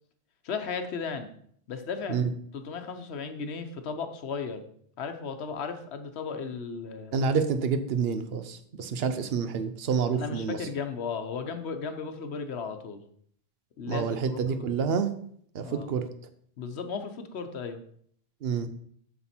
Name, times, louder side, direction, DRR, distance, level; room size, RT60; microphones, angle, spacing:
voice 1, 0.4-1.3 1.7-2.2 2.5-4.6 5.0-7.2 10.1-13.0 13.8-14.7 15.6-15.9 16.6-17.8, left 5 dB, 85° left, 8 dB, 1.1 m, -35 dB
voice 2, 7.1-10.6 13.9-15.1 15.5-16.1 18.4-18.7, right 6 dB, 70° right, 10 dB, 1.0 m, -28 dB
7.1 x 6.4 x 4.4 m, 0.63 s
omnidirectional pair, 1.1 m